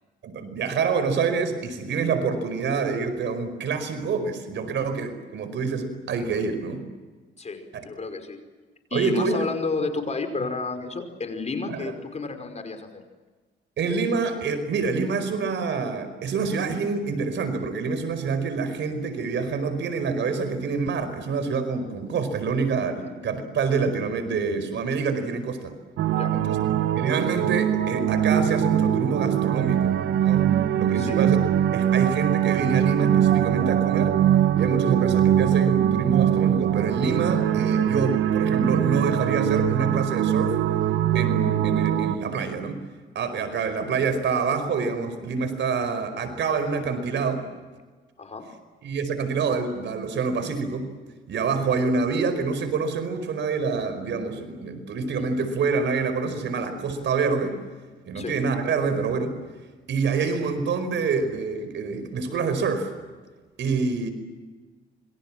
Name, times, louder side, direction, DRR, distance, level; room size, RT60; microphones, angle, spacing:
voice 1, 0.2-6.8 7.7-7.8 8.9-9.4 11.7-11.9 13.8-25.7 26.3-30.5 30.7-31.4 31.7-34.2 34.6-40.6 41.1-42.8 43.1-47.5 48.8-50.9 51.3-57.6 58.1-59.4 59.9-62.9 63.6-64.1, right 5 dB, 65° right, 10 dB, 5.0 m, -26 dB
voice 2, 7.4-8.4 8.9-13.0 23.0-23.1 26.1-26.3 31.0-31.2 48.2-48.5 58.1-58.4 60.0-60.1, left 4 dB, 35° left, 6 dB, 5.3 m, -31 dB
sound 1, 26.0-42.2, right 10 dB, 85° right, 1.5 m, -22 dB
27.0 x 25.0 x 7.6 m, 1.3 s
cardioid pair, 90°, 20 cm